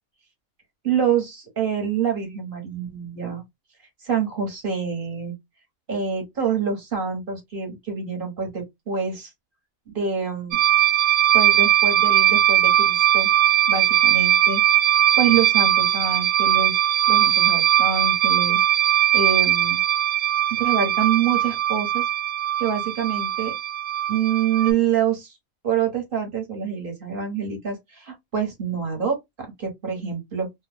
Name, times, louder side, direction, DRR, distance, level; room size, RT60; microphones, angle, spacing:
voice 1, 0.8-3.4 4.0-5.3 5.9-9.3 9.9-10.6 11.3-13.3 13.7-14.6 15.2-16.8 17.1-18.6 19.1-19.8 20.6-22.0 22.6-23.5 24.1-25.4 25.6-29.2 29.6-30.5, right 7 dB, 40° right, 1.2 m, -26 dB
sound 1, 10.5-24.7, right 12 dB, 80° right, 1.0 m, -20 dB
2.6 x 2.2 x 3.3 m
omnidirectional pair, 1.5 m